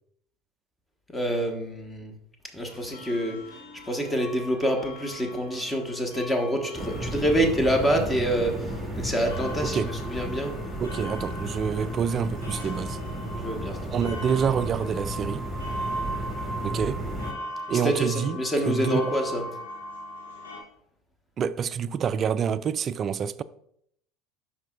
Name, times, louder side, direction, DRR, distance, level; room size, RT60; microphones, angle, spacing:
voice 1, 1.1-2.1 2.5-3.4 3.8-10.5 13.3-13.8 17.7-19.4, equal, 15° left, 1.5 m, -27 dB
sound 1, 2.7-20.6, equal, 80° left, 1.6 m, -39 dB
sound 2, 6.7-17.3, right 1 dB, 5° right, 2.1 m, -34 dB
voice 2, 10.8-13.0 13.9-15.4 16.6-17.0 17.7-19.1 21.4-23.4, right 7 dB, 40° right, 0.3 m, -27 dB
11.5 x 4.3 x 2.5 m
hypercardioid pair, 70°, 0 cm